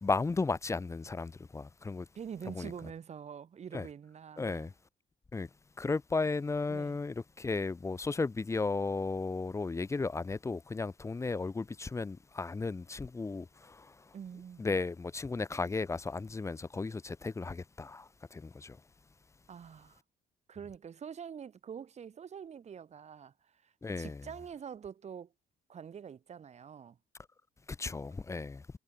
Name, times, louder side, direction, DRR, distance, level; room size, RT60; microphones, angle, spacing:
voice 1, 0.0-2.1 2.5-2.7 3.7-3.9 4.4-4.7 5.3-5.5 5.8-14.1 14.6-18.8 23.8-24.2 27.7-28.6, left 3 dB, 15° left, 0.8 m, -35 dB
voice 2, 2.2-4.7 6.7-7.0 14.1-14.7 19.5-20.0 20.5-25.3 25.7-27.0, right 7 dB, 40° right, 3.7 m, -46 dB
cardioid pair, 110°, 17 cm